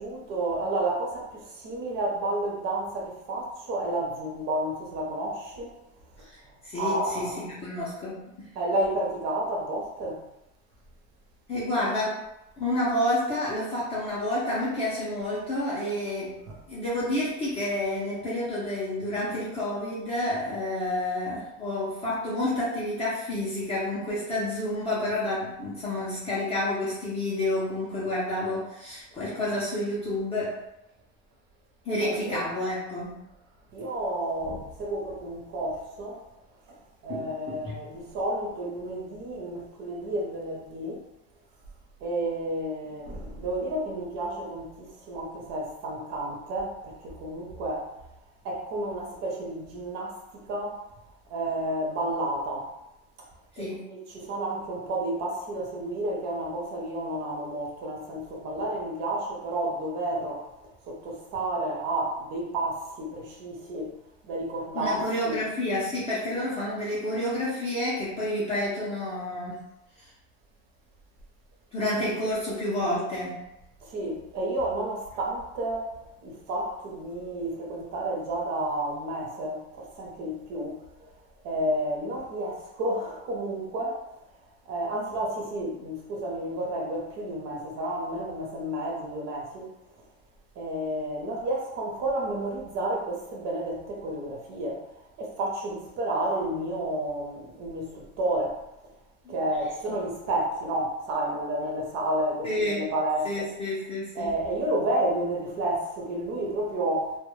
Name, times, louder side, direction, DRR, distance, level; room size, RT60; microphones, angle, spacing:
voice 1, 0.0-5.8 6.7-7.4 8.6-10.2 16.5-16.6 32.0-32.5 33.7-36.2 36.7-36.8 37.0-41.0 42.0-47.9 48.4-50.8 51.3-52.7 53.6-60.5 60.8-64.0 64.2-65.4 73.8-75.9 76.2-81.1 81.4-84.0 84.7-89.7 90.6-94.9 95.2-98.6 99.3-103.5 104.2-107.2, right 1 dB, 50° right, -2 dB, 0.6 m, -31 dB
voice 2, 6.6-8.5 11.5-12.2 12.6-16.4 16.7-30.6 31.9-33.2 37.1-37.2 37.6-37.7 53.5-54.0 64.7-69.6 70.0-70.1 71.7-73.4 99.2-99.3 99.9-100.0 102.4-102.8 103.2-104.3, left 1 dB, 20° left, -8 dB, 0.4 m, -29 dB
2.2 x 2.1 x 3.0 m, 0.89 s
cardioid pair, 175°, 34 cm